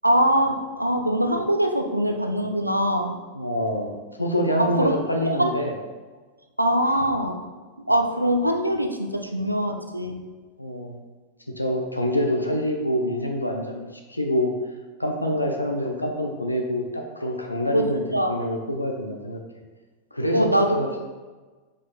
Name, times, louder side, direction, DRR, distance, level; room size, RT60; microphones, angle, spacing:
voice 1, 0.0-3.2 4.6-4.9 5.3-5.5 6.6-7.4 7.8-10.2 17.7-17.8 18.1-18.3 20.3-20.8, right 1 dB, 90° right, 5 dB, 0.6 m, -22 dB
voice 2, 3.3-5.7 6.8-7.0 10.6-11.0 11.6-14.5 15.0-18.0 18.3-19.4 20.1-21.0, equal, 85° left, 2 dB, 0.6 m, -26 dB
5.6 x 5.0 x 4.1 m, 1.3 s
figure-of-eight pair, 90°, 0 cm